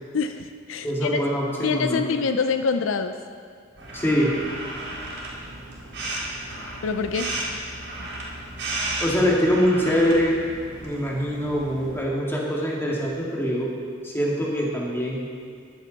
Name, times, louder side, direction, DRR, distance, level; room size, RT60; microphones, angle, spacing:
voice 1, 0.1-1.2 1.6-3.1 6.8-7.3, left 5 dB, 75° left, 8 dB, 0.5 m, -25 dB
voice 2, 0.8-2.0 3.9-4.3 9.0-10.4 10.8-13.7 14.0-15.2, equal, 10° left, -3 dB, 2.2 m, -23 dB
sound 1, 3.8-12.0, right 2 dB, 60° right, 3.9 m, -34 dB
14.5 x 12.0 x 4.1 m, 2.3 s
head